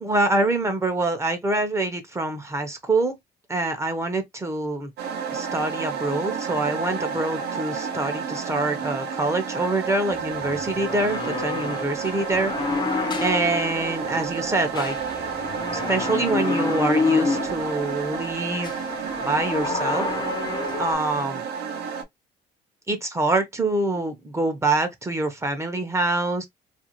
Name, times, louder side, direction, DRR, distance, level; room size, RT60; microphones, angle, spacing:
voice 1, 0.0-3.2 3.5-4.9 5.3-12.5 13.2-15.0 15.7-18.7 19.2-20.1 20.8-21.4 22.9-26.5, right 2 dB, 15° right, 0.6 m, -25 dB
sound 1, 5.0-22.0, right 6 dB, 70° right, 0.7 m, -31 dB
sound 2, 10.1-20.9, left 4 dB, 25° left, 0.6 m, -29 dB
2.5 x 2.3 x 2.8 m
cardioid pair, 110°, 17 cm